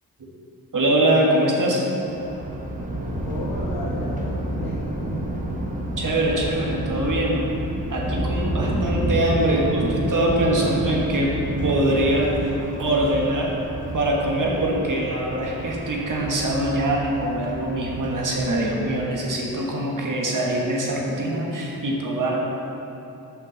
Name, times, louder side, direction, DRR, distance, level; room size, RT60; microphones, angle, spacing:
voice 1, 0.7-1.8 6.0-7.5 7.9-12.3 12.8-13.5 13.9-22.4, right 1 dB, 55° right, -2 dB, 1.5 m, -23 dB
Thunder, 2.0-19.4, right 1 dB, 20° right, 1.1 m, -30 dB
voice 2, 3.2-5.2, left 1 dB, 80° left, -5 dB, 1.0 m, -34 dB
6.2 x 5.9 x 6.5 m, 2.9 s
cardioid pair, 85°, 37 cm